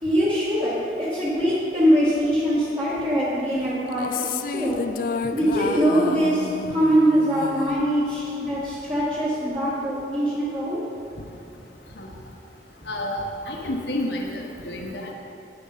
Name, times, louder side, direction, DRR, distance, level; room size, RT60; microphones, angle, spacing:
voice 1, 0.0-4.8 5.3-10.8, equal, 30° right, -11 dB, 1.8 m, -23 dB
sound 1, 3.9-8.3, left 5 dB, 50° left, 0.3 m, -31 dB
voice 2, 12.9-15.1, left 1 dB, 70° left, 0 dB, 1.0 m, -30 dB
8.8 x 8.7 x 5.6 m, 2.8 s
head